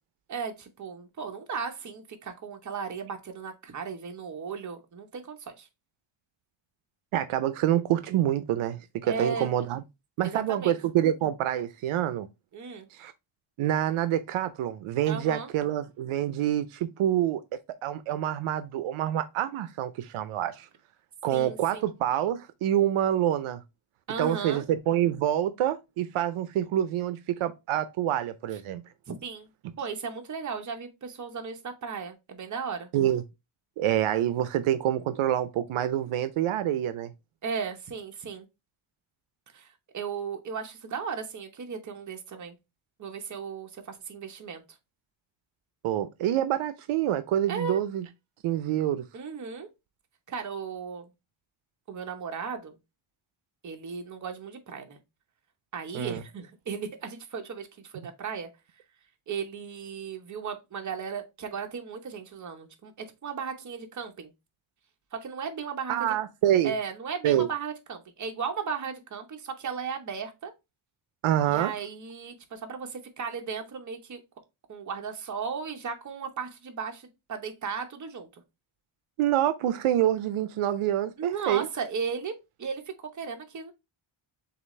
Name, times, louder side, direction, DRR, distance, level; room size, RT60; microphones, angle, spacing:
voice 1, 0.3-5.7 9.0-9.5 10.2-10.8 12.5-12.9 15.1-15.5 21.3-21.9 24.1-24.6 29.1-29.5 29.8-32.9 37.4-38.5 39.5-42.6 43.0-44.6 47.5-47.8 49.1-49.7 50.3-51.1 51.9-52.8 53.6-55.0 55.7-58.5 59.3-64.3 65.1-66.1 66.6-70.5 71.4-74.2 74.7-78.4 81.2-82.3 82.6-83.7, right 6 dB, 35° right, 0.9 m, -36 dB
voice 2, 7.1-9.8 10.2-12.3 12.9-13.1 13.6-17.4 17.8-20.7 21.2-23.6 24.2-28.8 32.9-33.2 33.8-37.1 45.8-48.1 48.4-49.0 55.9-56.2 65.9-66.7 67.2-67.5 71.2-71.7 79.2-81.7, right 11 dB, 80° right, 0.6 m, -27 dB
6.7 x 2.5 x 3.1 m
wide cardioid pair, 150°, 48 cm